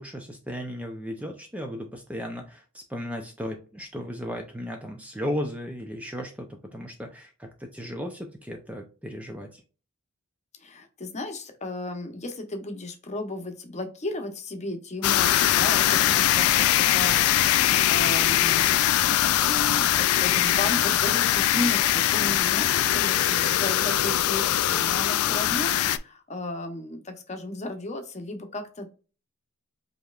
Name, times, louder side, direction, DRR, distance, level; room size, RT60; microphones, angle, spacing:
voice 1, 0.0-9.6, equal, 5° right, 3 dB, 0.5 m, -35 dB
voice 2, 10.6-18.8 19.4-28.9, left 2 dB, 30° left, 6 dB, 0.9 m, -34 dB
sound 1, 15.0-26.0, left 12 dB, 75° left, 0.3 m, -22 dB
5.2 x 3.0 x 2.4 m, 0.34 s
head